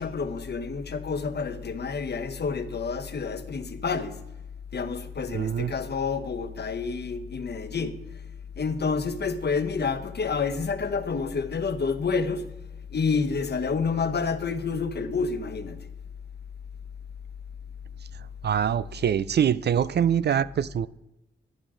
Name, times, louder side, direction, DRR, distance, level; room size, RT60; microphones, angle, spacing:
voice 1, 0.0-4.2 4.7-8.0 8.6-12.5 12.9-15.9, left 5 dB, 50° left, 1.1 m, -29 dB
voice 2, 5.3-5.7 18.4-20.9, right 9 dB, 55° right, 0.4 m, -24 dB
10.5 x 10.0 x 3.8 m
supercardioid pair, 45°, 21 cm